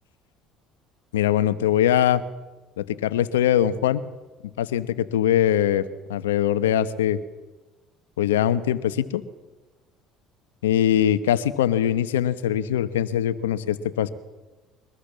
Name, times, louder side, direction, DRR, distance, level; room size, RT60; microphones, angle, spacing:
voice 1, 1.1-2.2 2.8-4.0 4.6-7.2 8.2-9.2 10.6-14.1, left 10 dB, 85° left, 15 dB, 1.0 m, -22 dB
23.5 x 19.5 x 7.4 m, 1.2 s
hypercardioid pair, 65°, 0 cm